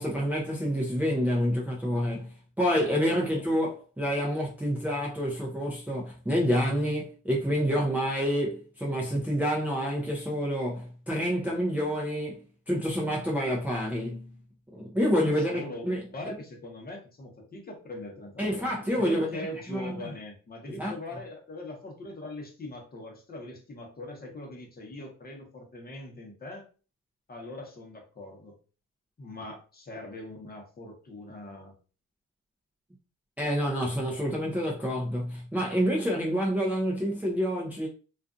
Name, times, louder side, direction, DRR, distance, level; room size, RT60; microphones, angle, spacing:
voice 1, 0.0-12.4 12.7-14.3 14.7-16.3 18.4-20.1 20.7-20.9 33.4-37.9, equal, 5° right, 0.5 m, -28 dB
voice 2, 3.1-3.4 15.5-18.7 19.0-26.7 27.3-28.6 29.2-31.7, left 1 dB, 30° left, 0.9 m, -41 dB
2.5 x 2.4 x 2.4 m
cardioid pair, 90°, 30 cm